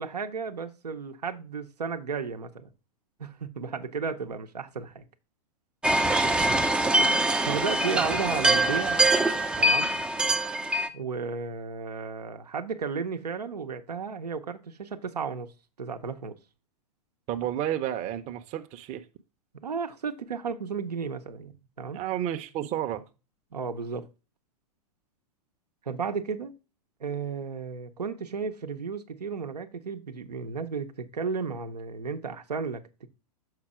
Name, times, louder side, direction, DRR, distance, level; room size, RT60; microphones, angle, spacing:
voice 1, 0.0-2.7 3.2-5.0 7.4-9.0 9.6-9.9 10.9-15.5 15.8-16.3 19.6-22.0 23.5-24.1 25.9-26.5 27.0-33.1, right 5 dB, 90° right, 0.8 m, -33 dB
sound 1, 5.8-10.9, right 2 dB, 5° right, 0.4 m, -24 dB
voice 2, 17.3-19.0 21.9-23.0, right 11 dB, 35° right, 0.7 m, -31 dB
6.6 x 4.3 x 4.8 m
hypercardioid pair, 110°, 20 cm